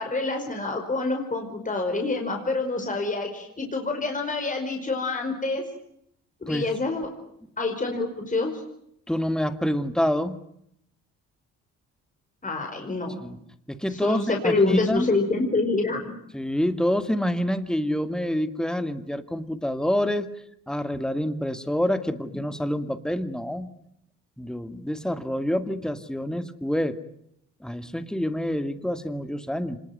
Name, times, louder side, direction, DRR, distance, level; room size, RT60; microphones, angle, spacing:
voice 1, 0.0-5.6 6.5-7.0 7.6-8.6 12.4-13.2 13.9-16.1, left 3 dB, 25° left, 3 dB, 5.0 m, -26 dB
voice 2, 9.1-10.4 13.2-13.4 13.7-15.1 16.3-20.3 20.7-23.7 24.4-27.0 27.6-29.8, equal, ahead, 10 dB, 2.3 m, -27 dB
26.0 x 20.5 x 9.4 m, 0.74 s
cardioid pair, 85°, 33 cm